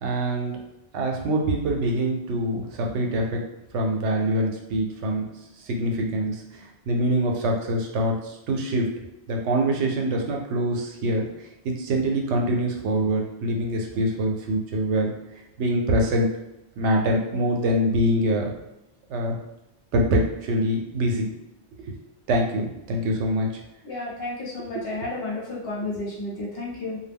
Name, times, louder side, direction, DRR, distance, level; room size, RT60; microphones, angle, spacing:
voice 1, 0.0-0.6 0.9-3.4 3.7-5.2 5.6-8.9 9.3-11.3 11.6-15.1 15.6-16.3 16.8-18.5 19.1-19.4 19.9-21.3 21.8-21.9 22.3-23.5 25.0-25.1 25.9-26.0, right 1 dB, 85° right, 1 dB, 0.9 m, -24 dB
voice 2, 23.8-27.0, left 2 dB, 65° left, -5 dB, 1.0 m, -32 dB
2.2 x 2.1 x 3.4 m, 0.94 s
omnidirectional pair, 1.2 m